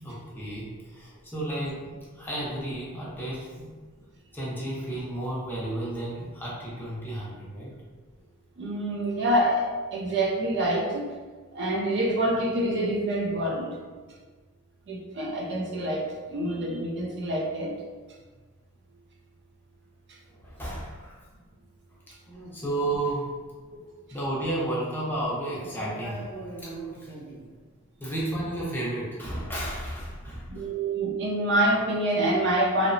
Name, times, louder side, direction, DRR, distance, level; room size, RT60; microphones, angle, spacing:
voice 1, 0.0-3.7 4.3-7.8 20.3-21.2 22.3-23.4 24.1-27.5 28.0-30.6, right 1 dB, 10° left, -6 dB, 0.6 m, -33 dB
voice 2, 8.6-11.2 11.5-13.8 14.9-17.8 23.7-23.8 30.5-32.9, right 1 dB, 55° right, -1 dB, 0.4 m, -26 dB
2.7 x 2.1 x 2.5 m, 1.4 s
head